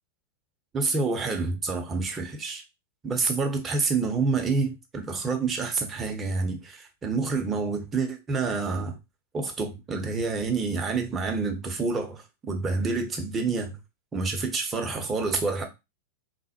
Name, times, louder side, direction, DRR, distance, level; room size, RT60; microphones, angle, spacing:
voice 1, 0.7-2.6 3.0-9.0 9.3-13.8 14.1-15.7, right 4 dB, 20° right, 0.8 m, -28 dB
3.3 x 2.1 x 2.8 m
figure-of-eight pair, 95°, 0 cm